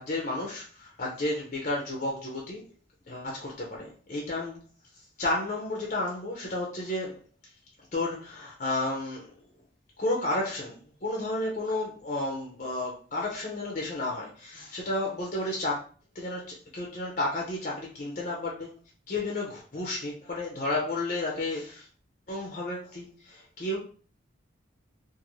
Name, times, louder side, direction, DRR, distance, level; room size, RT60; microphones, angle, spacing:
voice 1, 0.0-2.6 3.1-4.6 5.2-7.2 7.9-9.3 10.0-15.8 16.1-18.7 19.1-21.9 22.3-23.8, left 2 dB, 40° left, -2 dB, 0.6 m, -32 dB
2.5 x 2.5 x 3.0 m, 0.41 s
head